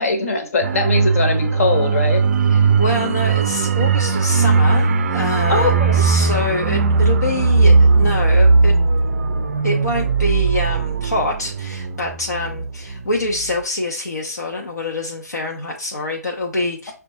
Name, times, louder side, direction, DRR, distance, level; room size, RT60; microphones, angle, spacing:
voice 1, 0.0-2.2 5.5-6.0, left 3 dB, 55° left, 5 dB, 1.0 m, -20 dB
sound 1, 0.6-13.0 13.3-13.5, right 4 dB, 50° right, 0.4 m, -17 dB
voice 2, 2.5-8.7 9.6-16.9, left 2 dB, 75° left, 0 dB, 0.6 m, -25 dB
5.8 x 2.3 x 2.7 m, 0.35 s
figure-of-eight pair, 125°, 9 cm